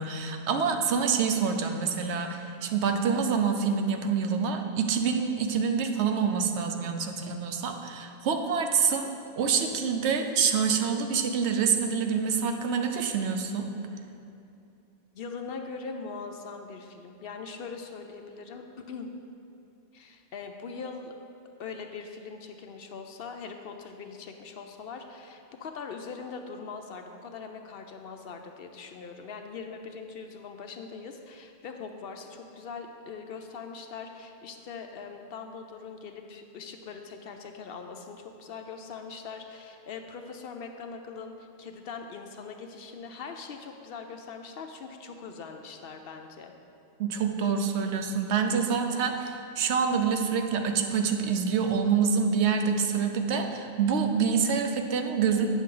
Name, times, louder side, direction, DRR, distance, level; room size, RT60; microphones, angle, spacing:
voice 1, 0.0-9.1 9.4-13.7 47.0-55.5, right 6 dB, 75° right, 4 dB, 0.9 m, -26 dB
voice 2, 15.1-19.1 19.9-21.1 21.6-46.5, left 5 dB, 65° left, 5 dB, 0.7 m, -41 dB
9.3 x 6.2 x 3.8 m, 2.7 s
omnidirectional pair, 1.2 m